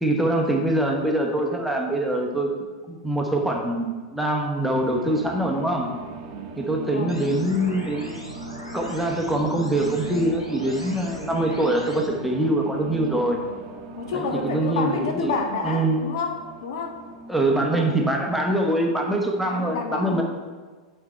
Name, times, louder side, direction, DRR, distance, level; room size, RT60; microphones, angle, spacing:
voice 1, 0.0-2.5 2.9-5.9 6.6-8.2 8.7-13.4 14.1-15.3 15.6-16.0 17.3-20.2, right 1 dB, ahead, 0 dB, 1.0 m, -24 dB
sound 1, 4.7-17.5, right 3 dB, 40° right, 0.9 m, -39 dB
voice 2, 6.8-7.3 14.0-17.0 17.7-18.1 19.4-20.2, left 4 dB, 55° left, 5 dB, 0.7 m, -29 dB
sound 2, 7.1-12.1, left 1 dB, 90° left, 1.1 m, -40 dB
8.2 x 4.3 x 4.5 m, 1.4 s
figure-of-eight pair, 95°, 3 cm